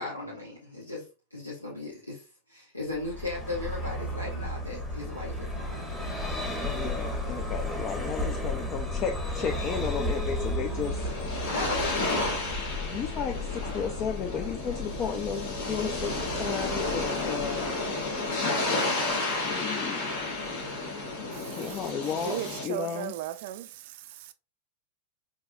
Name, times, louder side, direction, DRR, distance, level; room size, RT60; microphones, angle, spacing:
voice 1, 0.0-2.2 2.5-6.2 11.5-12.3 18.3-19.1, left 2 dB, 85° left, 1.0 m, -37 dB
Vehicle, 2.9-18.3, left 1 dB, 10° left, 1.2 m, -34 dB
voice 2, 6.6-11.0 12.8-17.8 19.4-20.2 21.4-23.1, left 7 dB, 30° left, 0.4 m, -34 dB
sound 1, 10.4-22.6, left 2 dB, 50° left, 1.2 m, -32 dB
voice 3, 21.3-21.9 22.2-24.3, right 13 dB, 50° right, 0.4 m, -37 dB
4.6 x 2.7 x 2.5 m
figure-of-eight pair, 90°, 0 cm